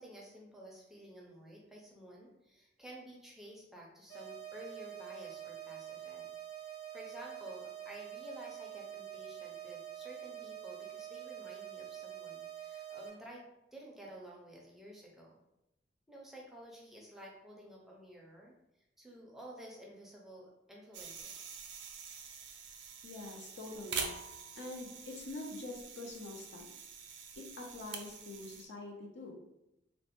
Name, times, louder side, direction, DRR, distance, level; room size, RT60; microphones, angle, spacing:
voice 1, 0.0-6.3 6.6-13.4 13.7-15.4 16.1-18.6 19.0-21.5, equal, ahead, -3 dB, 0.5 m, -52 dB
sound 1, 4.1-13.1, right 11 dB, 45° left, 1.2 m, -46 dB
sound 2, 20.9-28.6, right 6 dB, 70° right, 0.4 m, -45 dB
voice 2, 23.0-24.1 24.6-26.7 27.4-29.3, left 2 dB, 70° left, 1 dB, 0.6 m, -45 dB
3.1 x 2.1 x 2.9 m, 0.88 s
head